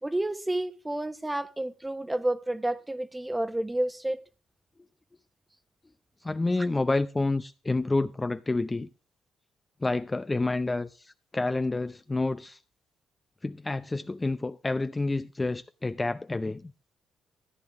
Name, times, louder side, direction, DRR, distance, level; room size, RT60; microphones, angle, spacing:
voice 1, 0.0-4.2, right 1 dB, 10° right, 1.1 m, -30 dB
voice 2, 6.2-8.9 9.8-12.6 13.4-16.7, left 2 dB, 20° left, 0.6 m, -29 dB
14.0 x 9.7 x 3.5 m
cardioid pair, 90°, 0 cm